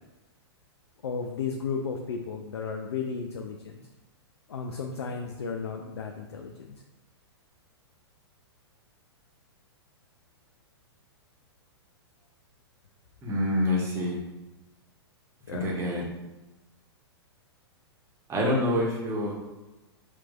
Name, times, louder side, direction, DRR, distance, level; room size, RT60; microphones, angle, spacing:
voice 1, 1.0-3.8 4.5-6.8 15.5-15.7, left 5 dB, 70° left, 3 dB, 0.4 m, -34 dB
voice 2, 13.2-14.2 15.5-16.0 18.3-19.3, left 1 dB, 20° right, -3 dB, 1.2 m, -26 dB
6.0 x 2.8 x 2.4 m, 1.1 s
figure-of-eight pair, 110°, 14 cm